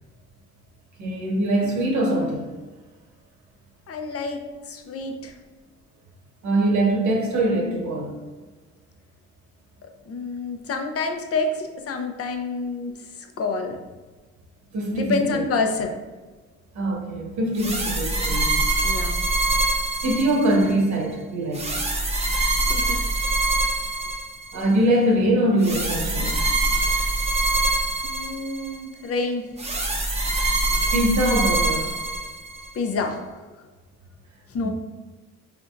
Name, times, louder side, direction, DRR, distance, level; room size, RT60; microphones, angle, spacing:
voice 1, 1.0-2.5 6.4-8.2 14.7-15.4 16.7-18.6 20.0-21.7 24.5-26.4 30.9-31.9 34.6-34.7, right 1 dB, 70° right, 0 dB, 1.2 m, -23 dB
voice 2, 3.9-4.4 4.6-5.3 9.8-13.8 14.9-16.0 18.8-19.3 22.7-23.0 28.0-29.5 32.7-33.4 34.5-34.7, left 3 dB, 50° left, 4 dB, 0.7 m, -28 dB
sound 1, 17.6-20.7 21.5-24.6 25.6-28.8 29.6-32.7, right 2 dB, 20° right, 0.7 m, -24 dB
5.0 x 3.4 x 2.6 m, 1.3 s
cardioid pair, 90°, 30 cm